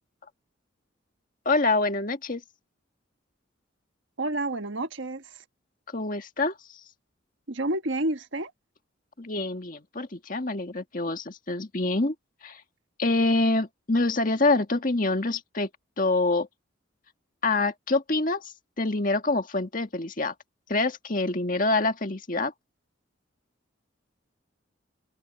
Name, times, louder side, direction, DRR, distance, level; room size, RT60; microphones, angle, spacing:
voice 1, 1.5-2.4 5.9-6.5 9.2-12.1 12.4-12.6 13.0-15.7 16.0-16.5 17.4-20.3 20.7-22.5, left 2 dB, 40° left, 1.8 m, -26 dB
voice 2, 4.2-5.4 7.5-8.5, right 2 dB, 70° right, 1.5 m, -29 dB
open air
head